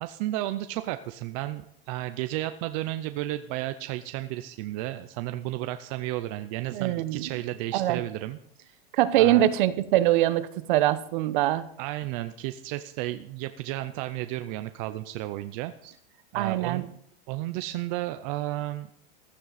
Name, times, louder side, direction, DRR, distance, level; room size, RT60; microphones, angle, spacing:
voice 1, 0.0-8.8 9.2-9.5 11.8-16.0 16.3-16.9 17.3-18.9, right 15 dB, 35° right, 10 dB, 0.5 m, -33 dB
voice 2, 6.7-7.3 7.7-8.0 8.9-11.7 16.3-16.9, right 13 dB, 55° right, 13 dB, 1.0 m, -23 dB
15.5 x 11.5 x 4.1 m, 0.70 s
supercardioid pair, 160°, 30 cm